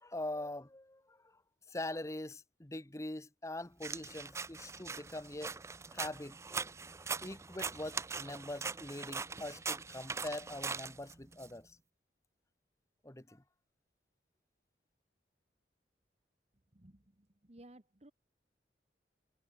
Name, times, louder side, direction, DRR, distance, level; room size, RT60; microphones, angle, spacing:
voice 1, 0.0-1.2 1.7-5.6 5.9-6.4 7.2-11.8 13.0-13.4, left 1 dB, 15° left, 1.0 m, -43 dB
sound 1, 3.8-11.5, right 5 dB, 15° right, 0.4 m, -41 dB
voice 2, 16.7-18.1, right 1 dB, 35° right, 1.4 m, -58 dB
head